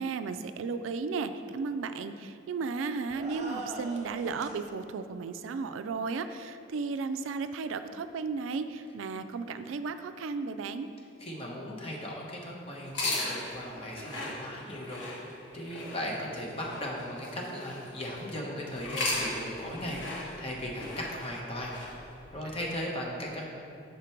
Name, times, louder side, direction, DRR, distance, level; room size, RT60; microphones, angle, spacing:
voice 1, 0.0-10.9, right 4 dB, 90° right, 10 dB, 0.3 m, -34 dB
sound 1, 3.1-4.6, right 2 dB, 35° right, 0.7 m, -41 dB
voice 2, 11.2-21.7 22.3-23.4, left 1 dB, 30° left, -2 dB, 1.0 m, -37 dB
sound 2, 12.8-18.2 18.7-22.7, left 1 dB, 75° left, 1.5 m, -37 dB
6.8 x 5.1 x 4.4 m, 2.7 s
head